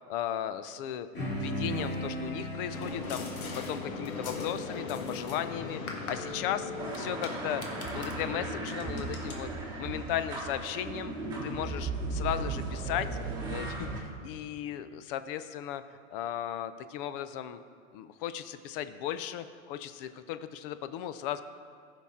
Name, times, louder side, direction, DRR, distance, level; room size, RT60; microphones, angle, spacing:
voice 1, 0.1-3.3 3.7-6.7 7.0-7.6 7.9-9.5 9.8-11.1 11.4-13.1 13.5-15.8 16.1-17.6 17.9-21.4, left 11 dB, 40° left, 12 dB, 0.5 m, -36 dB
sound 1, 1.1-5.9, equal, 25° left, 2.4 m, -38 dB
It gets harder to say goodbye the older I get, 2.7-9.3, left 3 dB, 85° left, 1.6 m, -39 dB
sound 2, 6.8-14.0, right 3 dB, 10° right, 1.8 m, -36 dB
15.0 x 5.7 x 3.6 m, 2.1 s
hypercardioid pair, 130°, 41 cm